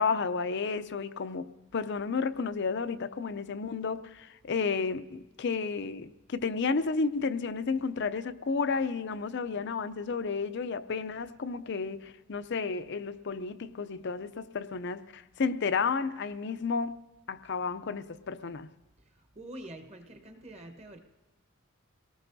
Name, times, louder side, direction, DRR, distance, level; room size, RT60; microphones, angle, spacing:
voice 1, 0.0-17.0 17.3-18.7, left 5 dB, 55° left, 0.5 m, -32 dB
voice 2, 19.3-21.0, right 1 dB, 30° right, 1.2 m, -45 dB
29.0 x 18.5 x 2.7 m
head